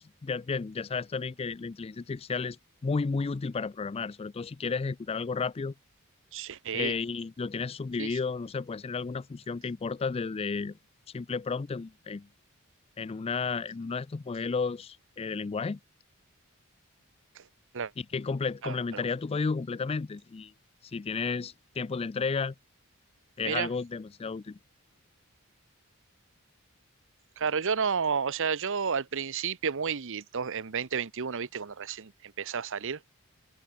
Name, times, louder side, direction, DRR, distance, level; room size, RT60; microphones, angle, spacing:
voice 1, 0.0-2.6 2.8-5.7 6.7-10.8 11.1-12.3 13.0-15.8 18.0-20.5 20.9-22.5 23.4-24.6, left 4 dB, 25° left, 0.4 m, -32 dB
voice 2, 6.3-6.9 8.0-8.2 17.3-17.4 17.7-17.9 18.6-19.0 23.4-23.7 27.4-33.0, right 6 dB, 60° right, 0.9 m, -31 dB
head